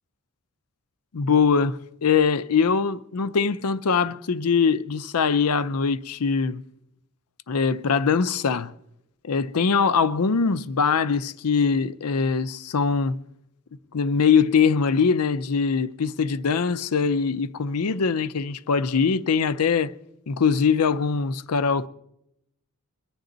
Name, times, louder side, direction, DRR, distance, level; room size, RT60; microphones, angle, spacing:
voice 1, 1.1-6.6 7.5-8.7 9.2-13.2 13.9-20.0 20.3-21.9, left 5 dB, 80° left, 0.6 m, -22 dB
23.0 x 9.5 x 3.9 m
head